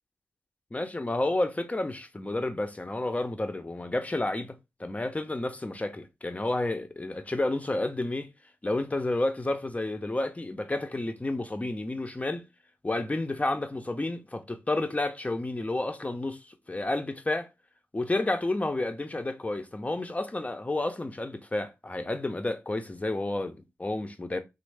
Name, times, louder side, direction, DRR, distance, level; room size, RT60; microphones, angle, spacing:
voice 1, 0.7-4.5 4.8-8.3 8.6-12.4 12.8-17.5 17.9-24.4, left 2 dB, 25° left, 0.6 m, -30 dB
3.1 x 2.1 x 3.3 m
cardioid pair, 45°, 6 cm